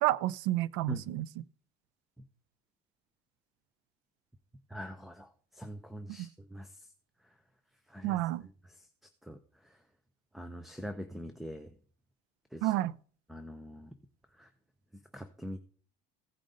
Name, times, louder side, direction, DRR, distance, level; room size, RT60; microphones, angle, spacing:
voice 1, 0.0-1.4 6.2-6.3 8.0-8.4 12.6-12.9, right 15 dB, 85° right, 0.5 m, -30 dB
voice 2, 4.7-5.3 5.6-6.7 7.9-8.2 9.3-9.4 10.3-11.7 12.5-12.7 13.3-13.9 14.4-14.5 15.1-15.6, equal, ahead, 0.5 m, -43 dB
15.5 x 5.2 x 3.8 m
cardioid pair, 150°, 19 cm